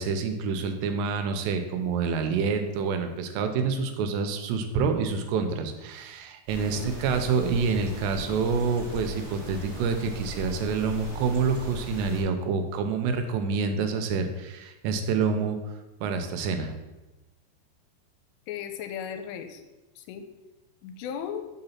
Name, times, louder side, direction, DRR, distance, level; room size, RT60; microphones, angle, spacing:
voice 1, 0.0-15.6 16.0-16.7, right 5 dB, 85° right, 7 dB, 2.8 m, -27 dB
sound 1, 6.5-12.2, left 2 dB, 60° right, 0.7 m, -39 dB
voice 2, 18.5-19.6 20.0-20.3 20.8-21.4, left 8 dB, 85° left, 7 dB, 2.7 m, -36 dB
6.0 x 3.9 x 5.7 m, 1.1 s
omnidirectional pair, 4.9 m